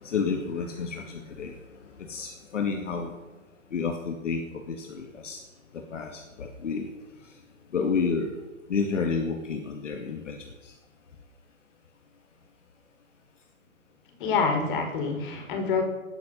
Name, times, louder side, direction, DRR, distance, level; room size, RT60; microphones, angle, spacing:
voice 1, 0.0-1.5 2.0-3.1 3.7-5.4 5.7-6.9 7.7-8.4 8.7-10.4 10.6-10.7, left 5 dB, 60° left, 4 dB, 2.3 m, -30 dB
voice 2, 14.2-15.8, left 5 dB, 35° left, 5 dB, 4.3 m, -26 dB
19.5 x 10.5 x 5.5 m, 1.2 s
hypercardioid pair, 145°, 41 cm